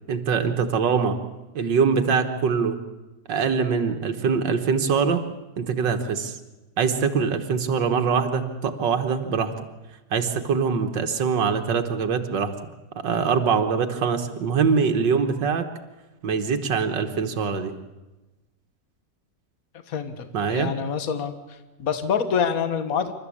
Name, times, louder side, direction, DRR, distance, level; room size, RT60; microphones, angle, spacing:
voice 1, 0.1-1.2 1.6-2.8 3.3-5.2 5.6-6.4 6.8-9.5 10.1-12.5 13.0-15.7 16.2-17.7 20.3-20.7, right 6 dB, 85° right, 6 dB, 2.0 m, -23 dB
voice 2, 19.9-21.3 21.8-23.1, left 6 dB, 55° left, 10 dB, 1.8 m, -26 dB
27.5 x 13.5 x 8.6 m, 1.1 s
omnidirectional pair, 1.9 m